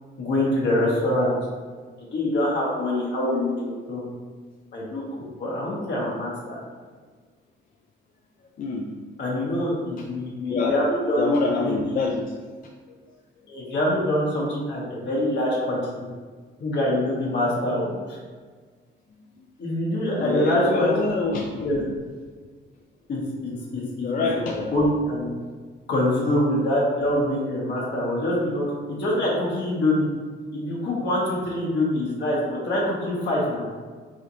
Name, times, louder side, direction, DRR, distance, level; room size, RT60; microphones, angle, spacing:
voice 1, 0.2-1.3 2.0-4.1 4.7-5.0 5.4-6.6 9.2-11.3 11.6-12.1 13.5-15.9 16.6-18.2 19.6-21.0 21.6-21.8 23.1-24.3 24.7-25.3 25.9-30.1 30.5-33.7, left 1 dB, 65° left, -4 dB, 1.4 m, -25 dB
voice 2, 11.2-12.2 20.2-21.7 24.0-24.7, left 4 dB, 45° left, -1 dB, 0.4 m, -25 dB
4.9 x 2.6 x 3.0 m, 1.5 s
cardioid pair, 90°, 20 cm